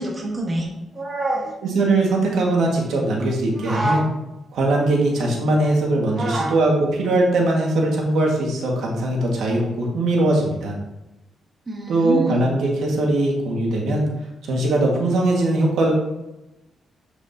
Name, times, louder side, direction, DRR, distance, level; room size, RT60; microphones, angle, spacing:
voice 1, 0.0-1.5 3.5-4.0 6.2-6.5 11.7-12.4, right 1 dB, 25° right, 0 dB, 1.4 m, -26 dB
voice 2, 1.7-4.0 4.5-10.7 11.9-14.1 14.4-15.9, right 2 dB, 80° right, -1 dB, 1.8 m, -20 dB
7.8 x 6.7 x 2.9 m, 0.95 s
cardioid pair, 135°, 0 cm